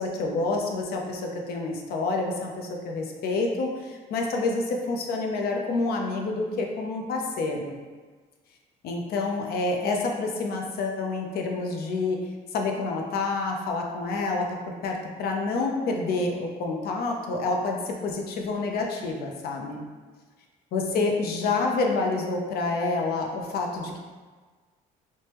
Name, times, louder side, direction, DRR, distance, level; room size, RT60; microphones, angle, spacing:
voice 1, 0.0-7.8 8.8-12.2 12.5-14.5 14.8-19.9 20.7-24.0, left 3 dB, 65° left, 1 dB, 0.5 m, -28 dB
3.3 x 2.1 x 2.9 m, 1.4 s
cardioid pair, 110°, 17 cm